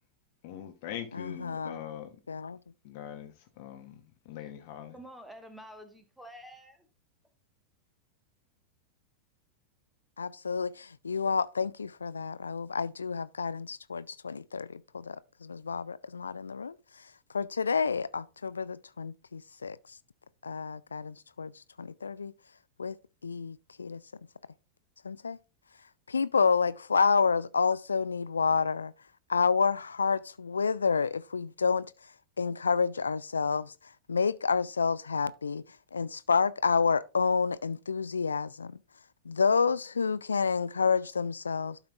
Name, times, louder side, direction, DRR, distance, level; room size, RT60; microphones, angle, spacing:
voice 1, 0.4-2.2 2.8-4.9, left 10 dB, 50° left, 0.9 m, -42 dB
voice 2, 1.1-1.8 2.3-2.6 10.2-16.8 17.3-19.8 20.4-21.5 21.8-22.3 22.8-23.0 23.2-24.0 25.0-25.4 26.1-28.9 29.3-31.9 32.4-33.7 34.1-35.6 35.9-38.8 39.3-41.8, left 5 dB, 75° left, 0.3 m, -29 dB
voice 3, 4.9-6.9, equal, ahead, 1.4 m, -49 dB
12.0 x 5.7 x 2.4 m
figure-of-eight pair, 90°, 0 cm